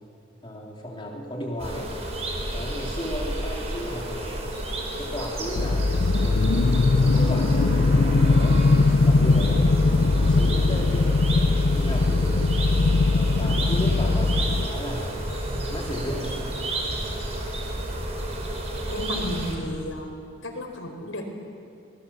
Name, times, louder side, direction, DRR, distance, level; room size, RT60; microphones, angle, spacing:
voice 1, 0.4-1.9 2.5-4.5 5.0-6.6 7.0-8.6 9.0-11.1 11.8-12.5 13.1-15.2 15.7-16.4, equal, 25° left, -2 dB, 3.7 m, -34 dB
sound 1, 1.6-19.5, right 1 dB, 30° right, 4.6 m, -31 dB
sound 2, 5.6-14.7, left 3 dB, 65° left, 0.6 m, -20 dB
voice 2, 18.9-20.2 20.4-21.2, left 1 dB, 85° left, 3 dB, 4.4 m, -32 dB
24.0 x 20.5 x 7.3 m, 2.4 s
head